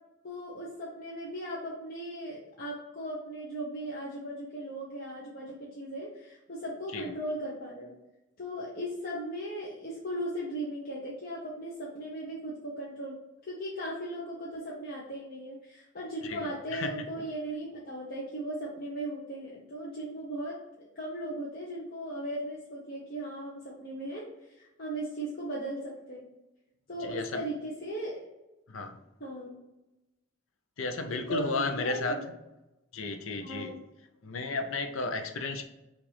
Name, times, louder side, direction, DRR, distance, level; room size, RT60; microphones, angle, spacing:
voice 1, 0.2-7.9 8.4-13.2 13.4-20.6 21.0-26.2 26.9-28.3 29.2-29.6 31.1-32.3 33.4-33.8, right 1 dB, 50° left, -5 dB, 0.8 m, -37 dB
voice 2, 16.2-16.9 27.1-27.4 28.7-29.0 30.8-32.2 32.9-33.7 34.2-35.6, left 3 dB, 90° left, 6 dB, 0.6 m, -33 dB
5.9 x 2.5 x 3.3 m, 0.97 s
head